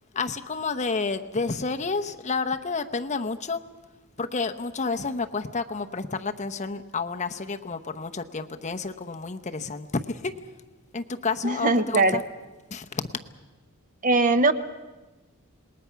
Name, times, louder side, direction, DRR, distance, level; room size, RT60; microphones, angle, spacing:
voice 1, 0.1-3.6 4.2-10.3 10.9-12.2 12.7-13.0, left 4 dB, 30° left, 7 dB, 0.8 m, -30 dB
voice 2, 11.4-12.2 14.0-14.5, right 2 dB, 35° right, 11 dB, 0.9 m, -20 dB
27.0 x 20.0 x 5.8 m, 1.2 s
head